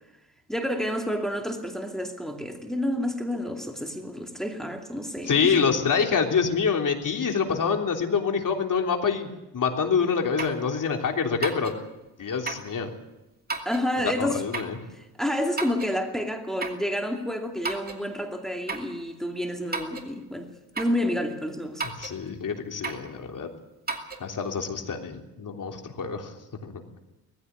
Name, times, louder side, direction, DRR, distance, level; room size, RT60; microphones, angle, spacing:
voice 1, 0.5-5.6 13.7-14.4 15.2-20.5 20.8-21.8, left 1 dB, ahead, 2.6 m, -29 dB
voice 2, 5.2-11.8 12.2-12.9 14.0-14.8 21.8-23.5 24.2-26.3 26.6-26.7, left 6 dB, 50° left, 3.4 m, -26 dB
sound 1, 10.4-10.6 11.4-11.8 12.5-12.7 13.5-13.9 14.5-14.8 15.6-16.0 16.6-16.9 17.6-18.0 18.7-18.9 19.7-20.1 20.8-21.0 21.8-22.2 22.8-23.1 23.9-24.3, right 4 dB, 25° right, 2.6 m, -33 dB
19.5 x 15.5 x 9.5 m
cardioid pair, 100°, 40 cm